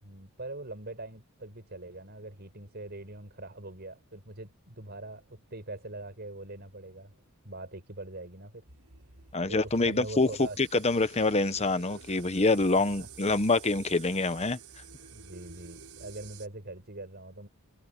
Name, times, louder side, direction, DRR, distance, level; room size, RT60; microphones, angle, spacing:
voice 1, 0.0-7.2 7.4-8.6 9.5-10.6 13.0-13.4 15.1-17.5, right 2 dB, 50° right, 5.8 m, -43 dB
sound 1, 8.7-16.5, right 6 dB, 85° right, 5.0 m, -50 dB
voice 2, 9.3-14.6, left 3 dB, 30° left, 1.1 m, -26 dB
head